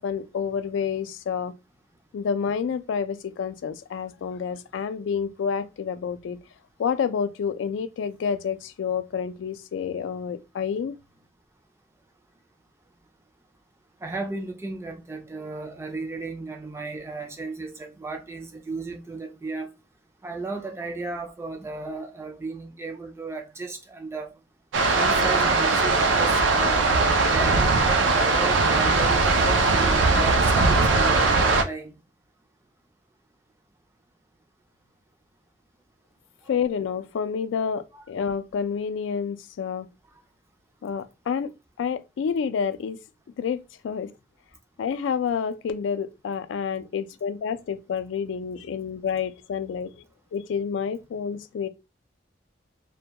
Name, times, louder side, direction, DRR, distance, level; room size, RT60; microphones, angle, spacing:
voice 1, 0.0-1.5 2.1-6.4 6.8-11.0 36.5-39.9 40.8-41.5 41.8-43.0 43.4-44.1 44.8-50.1 50.3-51.7, left 6 dB, 85° left, 0.3 m, -29 dB
voice 2, 14.0-19.7 20.2-24.3 24.9-27.7 28.1-29.3 29.7-31.9 37.9-38.0, right 3 dB, 15° right, 0.3 m, -34 dB
sound 1, 24.7-31.6, right 3 dB, 85° right, 0.4 m, -20 dB
2.2 x 2.2 x 2.7 m
head